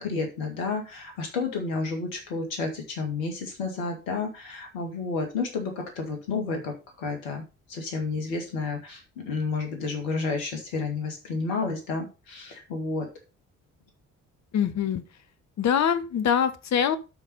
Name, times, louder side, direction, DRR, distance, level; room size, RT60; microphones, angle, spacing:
voice 1, 0.0-13.1, left 4 dB, 70° left, 3 dB, 2.4 m, -31 dB
voice 2, 14.5-15.0 15.6-17.0, left 8 dB, 40° left, 12 dB, 1.2 m, -24 dB
11.5 x 4.3 x 5.4 m, 0.30 s
figure-of-eight pair, 45°, 41 cm